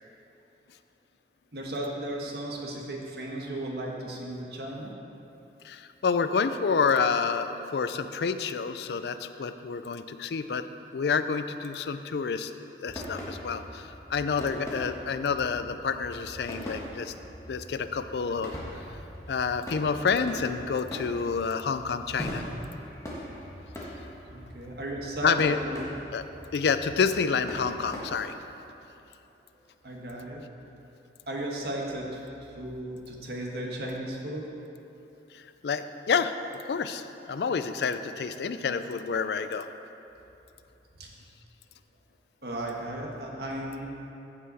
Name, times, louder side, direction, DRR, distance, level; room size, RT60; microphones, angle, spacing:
voice 1, 1.5-4.9 24.3-25.8 29.8-30.4 31.3-34.5 40.9-41.1 42.4-43.9, right 1 dB, 60° right, -1 dB, 1.4 m, -35 dB
voice 2, 5.6-10.6 10.9-12.5 12.8-17.1 17.5-18.6 19.3-22.4 25.2-25.6 26.1-26.2 26.5-28.4 35.3-39.7, left 5 dB, 70° left, 10 dB, 0.4 m, -28 dB
sound 1, 12.9-28.0, equal, 15° left, 1.6 m, -41 dB
15.0 x 5.7 x 4.1 m, 2.9 s
head